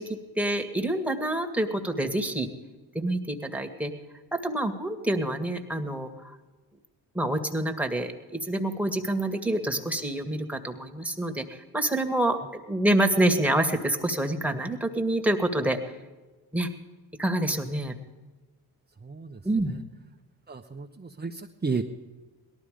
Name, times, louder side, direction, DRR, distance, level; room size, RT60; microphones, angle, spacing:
voice 1, 0.0-2.5 2.9-3.9 4.3-6.3 7.1-15.8 16.5-16.7 17.2-17.9 19.4-19.7, right 1 dB, 5° right, 4 dB, 2.0 m, -27 dB
voice 2, 19.0-19.4 20.5-21.8, right 4 dB, 25° right, 2 dB, 1.0 m, -33 dB
18.0 x 13.0 x 5.1 m, 1.2 s
supercardioid pair, 55°, 42 cm